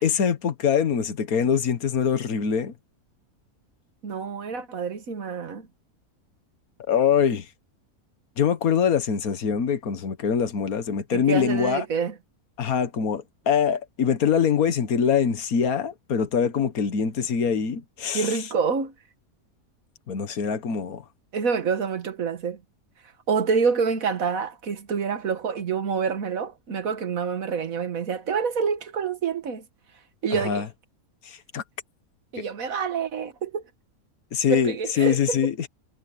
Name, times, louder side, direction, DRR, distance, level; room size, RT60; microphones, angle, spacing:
voice 1, 0.0-2.7 6.9-7.5 8.4-11.8 12.6-18.4 20.1-21.0 30.3-30.7 31.3-31.6 32.4-32.5 34.3-35.7, left 7 dB, 70° left, 1.8 m, -24 dB
voice 2, 4.0-5.7 11.1-12.1 18.1-18.9 21.3-22.6 23.3-29.6 30.2-30.6 32.3-33.6 34.5-35.4, right 6 dB, 65° right, 1.9 m, -27 dB
omnidirectional pair, 1.6 m